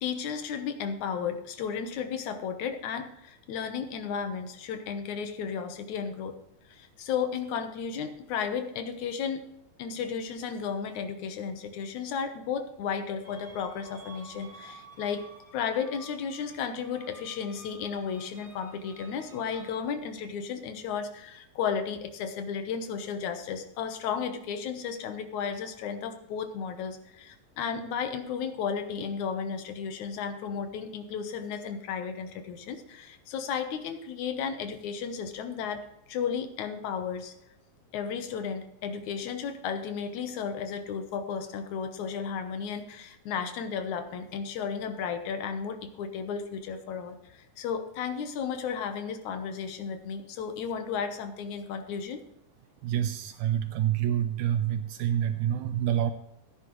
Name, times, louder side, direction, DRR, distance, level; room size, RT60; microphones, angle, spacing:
voice 1, 0.0-6.4 6.7-9.5 9.8-15.3 15.5-37.3 37.9-52.2, left 6 dB, 65° left, 7 dB, 2.2 m, -34 dB
sound 1, 13.2-19.8, right 2 dB, 25° right, 1.2 m, -52 dB
voice 2, 52.8-56.1, right 10 dB, 85° right, 9 dB, 1.7 m, -27 dB
17.0 x 10.0 x 3.1 m, 0.80 s
omnidirectional pair, 4.0 m